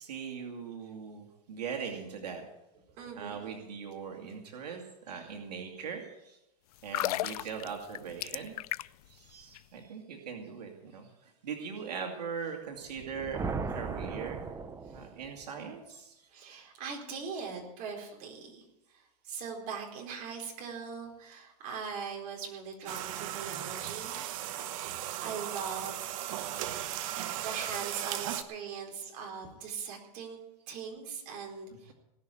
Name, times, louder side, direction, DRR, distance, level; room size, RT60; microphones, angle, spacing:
voice 1, 0.0-2.4 3.2-6.4 6.8-8.6 9.1-13.4 13.7-14.5 14.9-16.3, right 6 dB, 90° right, 2 dB, 2.5 m, -41 dB
voice 2, 2.9-3.4 5.1-5.3 7.4-7.5 8.0-8.1 14.8-15.1 16.3-24.2 25.2-30.4 30.7-31.9, right 6 dB, 40° right, 0 dB, 4.2 m, -41 dB
sound 1, 6.8-9.1 9.4-9.6, left 16 dB, 70° left, 0.4 m, -34 dB
sound 2, 12.9-15.5, right 4 dB, 15° right, 0.8 m, -37 dB
sound 3, 22.8-28.4, right 12 dB, 55° right, 1.1 m, -37 dB
19.0 x 6.4 x 9.1 m, 0.91 s
supercardioid pair, 140°, 20 cm